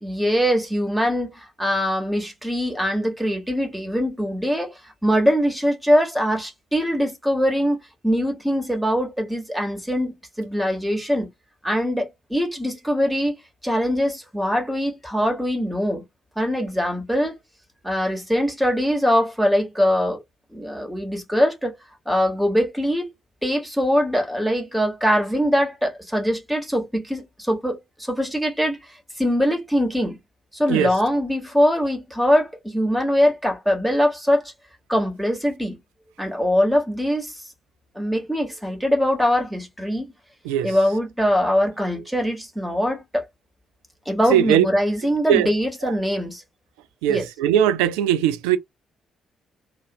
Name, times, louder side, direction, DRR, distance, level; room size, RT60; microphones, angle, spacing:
voice 1, 0.0-4.7 5.0-11.3 11.6-16.0 16.4-17.4 17.8-20.2 20.5-21.7 22.1-23.1 23.4-28.8 29.2-30.2 30.5-34.5 34.9-35.8 36.2-37.4 37.9-40.1 40.6-43.3 44.0-46.4 47.1-47.3, equal, ahead, 1.2 m, -22 dB
voice 2, 40.4-40.8 44.3-44.7 45.3-45.5 45.8-45.9 47.0-48.6, right 10 dB, 70° right, 0.3 m, -19 dB
2.5 x 2.0 x 2.6 m
figure-of-eight pair, 45°, 0 cm